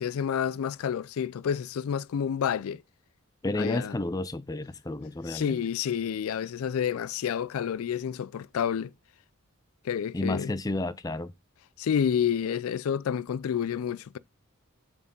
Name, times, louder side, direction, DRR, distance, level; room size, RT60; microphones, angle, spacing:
voice 1, 0.0-2.8 3.5-4.0 5.3-8.9 9.8-10.5 11.8-14.2, left 8 dB, 85° left, 0.4 m, -29 dB
voice 2, 3.4-5.6 10.1-11.3, left 2 dB, 15° left, 0.4 m, -31 dB
7.2 x 6.2 x 3.8 m
head